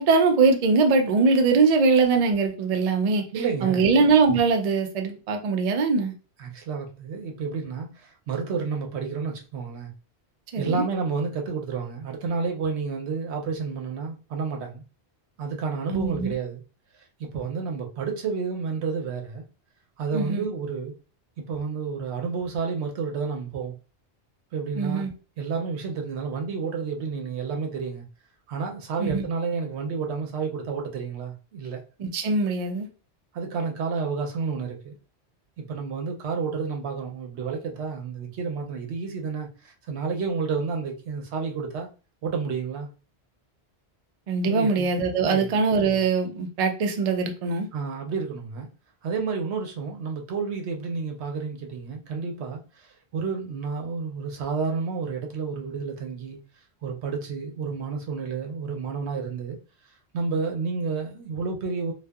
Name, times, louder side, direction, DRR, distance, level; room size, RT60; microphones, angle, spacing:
voice 1, 0.0-3.2 3.6-6.1 10.5-10.8 15.9-16.3 20.1-20.4 24.8-25.1 29.0-29.2 32.0-32.9 44.3-47.7, right 4 dB, 60° right, 0.4 m, -22 dB
voice 2, 3.3-3.9 6.4-9.9 10.6-14.8 15.4-16.6 17.2-19.4 20.0-20.9 21.4-23.8 24.5-25.1 25.4-28.0 28.5-31.8 33.3-35.0 35.6-41.9 42.2-42.9 44.5-44.9 45.2-45.5 47.7-48.7 49.0-56.4 56.8-59.6 60.1-61.9, right 5 dB, 75° right, 0.9 m, -30 dB
2.6 x 2.3 x 2.3 m
omnidirectional pair, 1.1 m